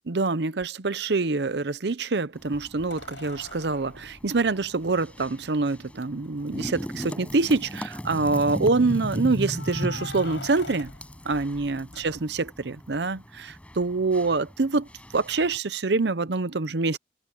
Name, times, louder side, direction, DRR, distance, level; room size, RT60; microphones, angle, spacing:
voice 1, 0.1-10.9 11.2-14.9 15.1-17.0, right 3 dB, 70° right, 0.8 m, -25 dB
sound 1, 0.6-0.7 2.9-5.3 6.2-6.3 6.6-6.7 7.3-7.8 9.5-12.6 15.1-15.2, left 3 dB, 90° left, 7.9 m, -44 dB
sound 2, 2.3-15.6, equal, 10° left, 5.5 m, -37 dB
head